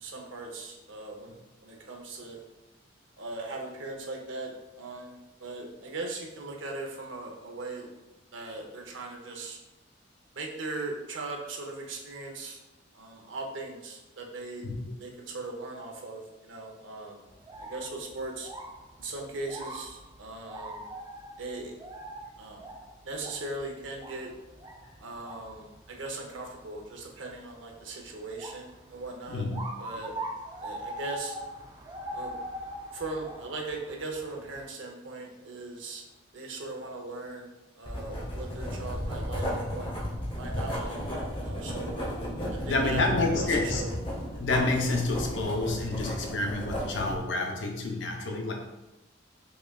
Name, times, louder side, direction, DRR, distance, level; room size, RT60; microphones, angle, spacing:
voice 1, 0.0-2.4 3.2-7.9 8.3-9.6 10.3-12.6 12.9-14.6 15.0-17.2 17.6-18.5 19.0-20.9 21.4-21.7 22.4-22.7 23.0-24.3 25.0-29.4 29.8-30.1 30.6-31.3 32.1-32.3 32.9-36.1 36.3-39.9 40.4-41.0 41.4-41.9 42.5-43.9, right 2 dB, 80° right, 1 dB, 0.7 m, -39 dB
sound 1, 17.3-34.7, right 1 dB, 25° right, 0.3 m, -43 dB
voice 2, 29.3-29.6 42.6-43.8 44.4-48.5, left 2 dB, 70° left, 2 dB, 0.6 m, -28 dB
Writing, 37.9-47.2, equal, 25° left, 0.7 m, -34 dB
5.1 x 2.3 x 2.2 m, 1.0 s
head